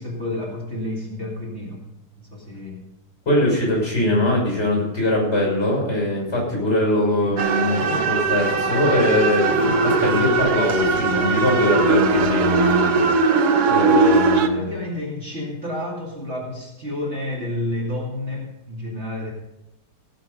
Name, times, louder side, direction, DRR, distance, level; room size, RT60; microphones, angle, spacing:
voice 1, 0.0-1.8 2.2-2.8 7.2-7.4 14.5-19.3, left 1 dB, 40° right, -3 dB, 2.8 m, -30 dB
voice 2, 3.3-13.1 13.7-14.6, left 1 dB, 40° left, -2 dB, 6.5 m, -21 dB
sound 1, 7.4-14.5, right 4 dB, 70° right, 1.6 m, -20 dB
17.0 x 7.4 x 5.5 m, 0.92 s
omnidirectional pair, 1.8 m